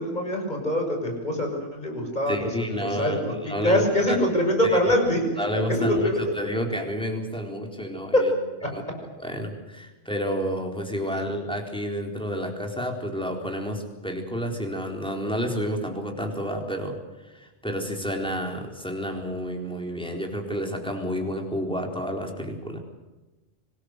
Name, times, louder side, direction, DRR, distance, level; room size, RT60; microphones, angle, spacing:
voice 1, 0.0-3.3 3.6-6.3 8.1-8.3 8.6-8.7 11.1-11.2, equal, 40° left, 2 dB, 6.4 m, -24 dB
voice 2, 2.3-3.2 3.5-4.2 4.6-4.8 5.4-5.9 6.4-8.3 8.7-8.8 9.2-17.0 17.3-22.8, equal, 5° left, 2 dB, 4.1 m, -30 dB
25.5 x 20.0 x 8.0 m, 1.1 s
omnidirectional pair, 1.2 m